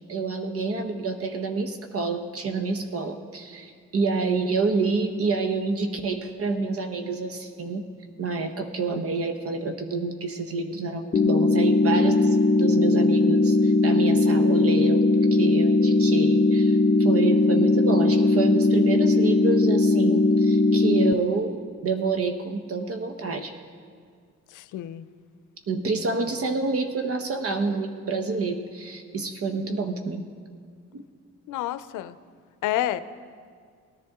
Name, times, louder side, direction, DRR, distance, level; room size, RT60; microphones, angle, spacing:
voice 1, 0.1-7.9 8.2-23.5 25.7-30.2 30.9-31.0, right 3 dB, 50° right, 6 dB, 1.0 m, -28 dB
sound 1, 11.1-21.1, left 2 dB, 30° left, 0.7 m, -19 dB
voice 2, 24.5-25.1 31.5-32.2 32.6-33.0, left 13 dB, 85° left, 14 dB, 0.5 m, -29 dB
18.5 x 10.5 x 3.6 m, 2.1 s
cardioid pair, 90°, 30 cm